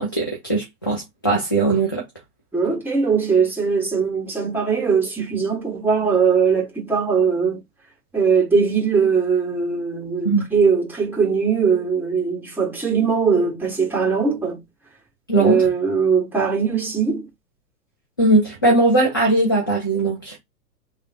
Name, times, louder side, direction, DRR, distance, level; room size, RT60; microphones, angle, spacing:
voice 1, 0.0-2.0 10.2-10.5 15.3-15.6 18.2-20.4, right 2 dB, 15° left, 0.3 m, -19 dB
voice 2, 2.5-7.6 8.1-14.6 15.4-17.3, right 5 dB, 5° right, 1.2 m, -20 dB
3.4 x 2.1 x 2.7 m
figure-of-eight pair, 105°, 49 cm